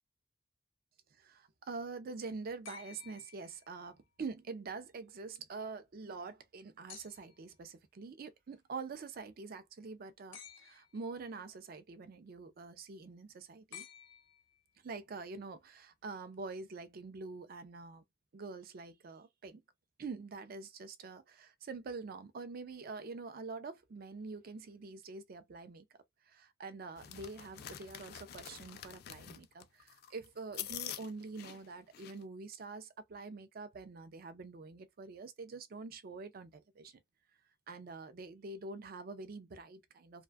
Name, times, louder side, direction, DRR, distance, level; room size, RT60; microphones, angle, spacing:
voice 1, 1.2-13.9 14.8-18.0 18.3-19.6 20.0-25.9 26.3-37.0 37.7-40.2, right 4 dB, 50° right, 0.4 m, -46 dB
sound 1, 2.7-4.0 6.9-7.5 10.3-11.1 13.7-14.8 16.3-16.4, left 8 dB, 90° left, 0.7 m, -54 dB
sound 2, 27.0-32.2, left 11 dB, 55° left, 0.3 m, -46 dB
2.5 x 2.2 x 2.2 m
head